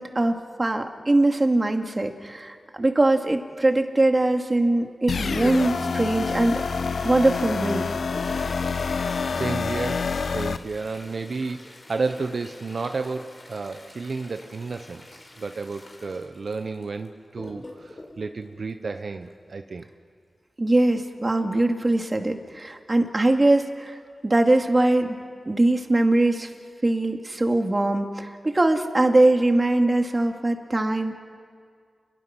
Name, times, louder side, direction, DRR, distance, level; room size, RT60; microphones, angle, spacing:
voice 1, 0.0-6.6 7.0-7.9 20.6-24.0 24.2-25.2 25.5-26.5 26.8-31.1, right 2 dB, 35° right, 4 dB, 2.4 m, -22 dB
sound 1, 5.1-10.6, left 5 dB, 75° left, 0.7 m, -27 dB
Toilet flush, 7.9-19.5 21.4-21.5 21.8-21.9 22.7-22.8 23.4-23.7 24.1-24.3, left 2 dB, 45° left, 5.5 m, -46 dB
voice 2, 9.2-19.9, right 4 dB, 70° right, 7 dB, 1.0 m, -32 dB
29.0 x 23.0 x 6.2 m, 2.1 s
cardioid pair, 45°, 0 cm